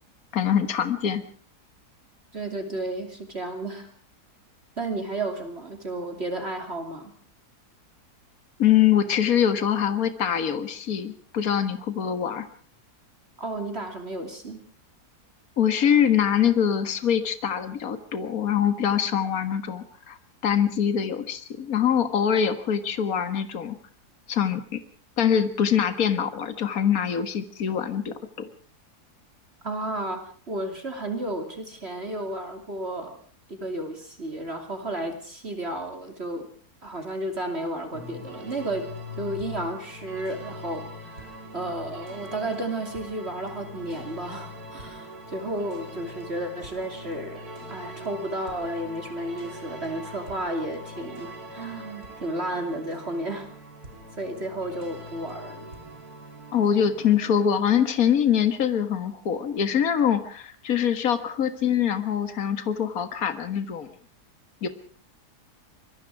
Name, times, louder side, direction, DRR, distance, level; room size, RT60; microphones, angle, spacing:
voice 1, 0.3-1.2 8.6-12.5 15.6-20.2 20.4-23.8 24.3-24.8 25.2-28.5 56.5-63.9 64.6-64.7, left 8 dB, 60° left, 10 dB, 2.0 m, -24 dB
voice 2, 2.3-3.9 4.8-7.1 13.4-14.6 29.6-33.2 33.5-36.5 36.8-38.9 39.2-47.4 47.7-53.5 54.2-55.7, right 1 dB, 40° right, 5 dB, 3.1 m, -32 dB
sound 1, 37.9-57.2, equal, 65° right, 3.7 m, -41 dB
25.5 x 22.0 x 4.8 m, 0.43 s
omnidirectional pair, 1.7 m